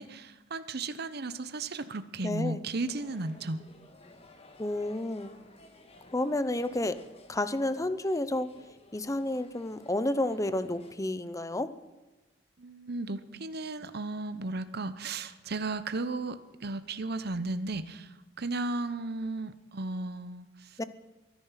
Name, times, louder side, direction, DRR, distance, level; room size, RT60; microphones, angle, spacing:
voice 1, 0.0-3.6 12.6-20.8, right 2 dB, 60° right, 12 dB, 0.9 m, -35 dB
voice 2, 2.2-2.6 4.6-5.3 6.1-7.0 7.3-8.5 8.9-11.7 20.8-20.9, left 1 dB, 15° left, 13 dB, 0.8 m, -30 dB
sound 1, 2.8-10.9, left 2 dB, 35° left, 1.8 m, -55 dB
23.0 x 10.5 x 5.8 m, 1.2 s
head